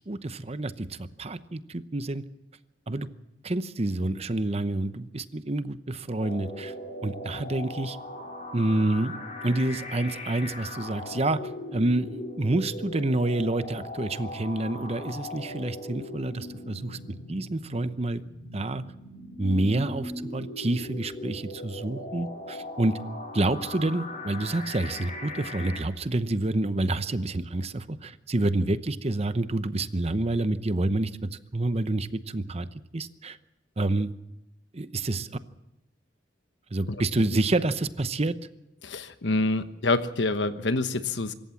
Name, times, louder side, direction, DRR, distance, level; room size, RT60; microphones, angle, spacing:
voice 1, 0.0-2.2 2.9-3.1 3.4-6.7 7.0-8.0 8.5-9.2 9.4-11.4 11.7-17.0 17.3-18.2 18.5-18.8 19.4-23.0 23.3-32.7 32.9-33.4 33.8-34.1 34.7-35.3 36.7-38.3, right 2 dB, 35° right, 13 dB, 0.8 m, -28 dB
sound 1, 6.2-25.8, left 2 dB, 40° left, 4.5 m, -39 dB
voice 2, 38.8-41.3, left 2 dB, 75° left, 10 dB, 1.2 m, -27 dB
25.5 x 14.0 x 7.2 m, 0.88 s
head